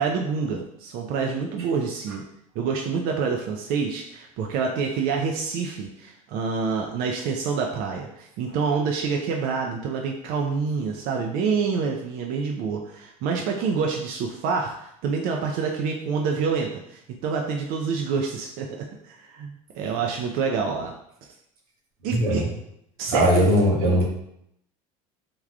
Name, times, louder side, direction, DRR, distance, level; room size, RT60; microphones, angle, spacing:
voice 1, 0.0-2.2 2.6-20.9 22.0-22.4 23.0-23.5, right 5 dB, 60° right, 1 dB, 0.4 m, -27 dB
voice 2, 22.1-22.5 23.1-24.0, equal, 90° right, -1 dB, 0.8 m, -19 dB
3.3 x 2.2 x 2.4 m, 0.75 s
hypercardioid pair, 80°, 18 cm